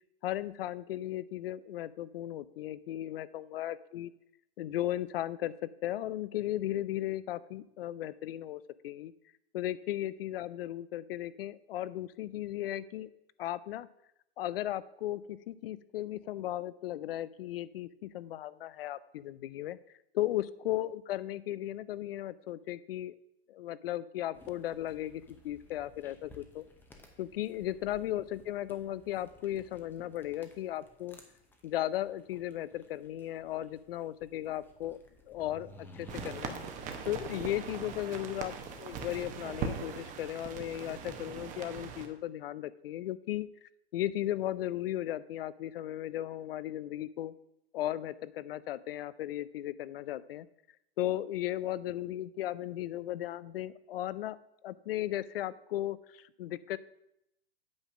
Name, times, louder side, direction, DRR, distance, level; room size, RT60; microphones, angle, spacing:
voice 1, 0.2-4.1 4.6-9.1 9.5-13.1 13.4-13.9 14.4-19.8 20.1-23.1 23.5-26.6 27.2-31.2 31.6-35.0 35.3-36.6 37.0-38.5 38.8-43.5 43.9-47.3 47.7-50.5 51.0-54.4 54.6-56.8, left 13 dB, 60° left, 18 dB, 0.5 m, -36 dB
sound 1, 24.3-39.2, left 2 dB, 5° left, 0.7 m, -56 dB
sound 2, 36.1-42.1, right 6 dB, 25° right, 0.9 m, -40 dB
8.6 x 4.0 x 6.1 m, 0.80 s
hypercardioid pair, 135°, 32 cm